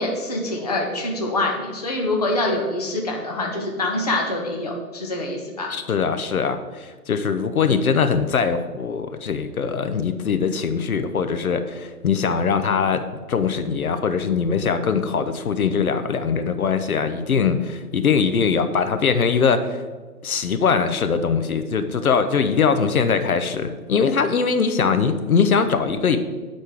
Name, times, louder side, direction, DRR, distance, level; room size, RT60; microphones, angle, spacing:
voice 1, 0.0-5.7, left 2 dB, 25° left, 0 dB, 0.6 m, -25 dB
voice 2, 5.7-19.8 20.2-26.2, left 6 dB, 65° left, 9 dB, 0.7 m, -21 dB
8.4 x 4.3 x 4.7 m, 1.4 s
hypercardioid pair, 160°, 47 cm